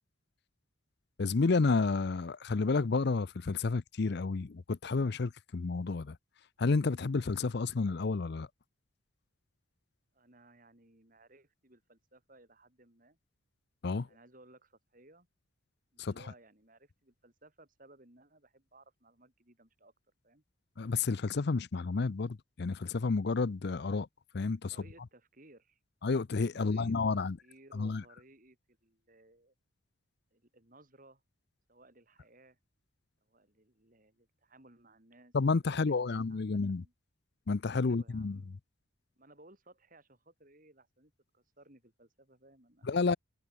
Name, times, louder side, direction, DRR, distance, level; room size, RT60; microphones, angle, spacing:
voice 1, 1.2-6.2 6.6-8.5 13.8-14.1 16.0-16.2 20.8-24.1 24.3-24.8 26.0-27.4 27.7-28.0 35.3-36.8 37.5-38.4 42.8-43.2, left 4 dB, 55° left, 0.5 m, -30 dB
voice 2, 10.1-13.2 14.0-15.3 15.9-19.9 20.2-20.4 24.7-25.8 26.5-29.5 30.3-31.2 31.7-32.6 33.2-35.4 35.6-36.9 37.8-38.6 39.2-42.9, right 2 dB, 40° right, 3.6 m, -60 dB
head